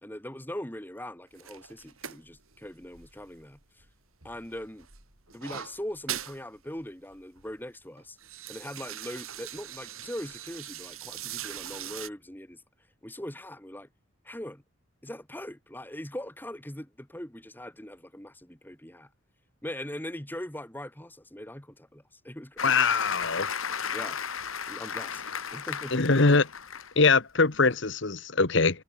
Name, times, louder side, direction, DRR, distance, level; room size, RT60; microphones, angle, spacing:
voice 1, 0.0-3.9 4.2-4.9 5.3-8.2 8.5-12.6 13.0-13.9 14.2-14.6 15.0-19.1 19.6-22.8 23.9-24.2 24.7-25.2 25.5-26.3, left 1 dB, 10° left, 2.2 m, -41 dB
sound 1, 1.3-3.9 4.2-6.4 6.8-6.9 7.1-7.5 8.0-12.1, right 10 dB, 80° right, 6.3 m, -41 dB
Applause, 22.6-27.1 27.5-27.7, left 7 dB, 75° left, 2.5 m, -34 dB
voice 2, 22.6-23.5 25.9-26.5 27.0-28.8, left 4 dB, 55° left, 1.3 m, -22 dB
head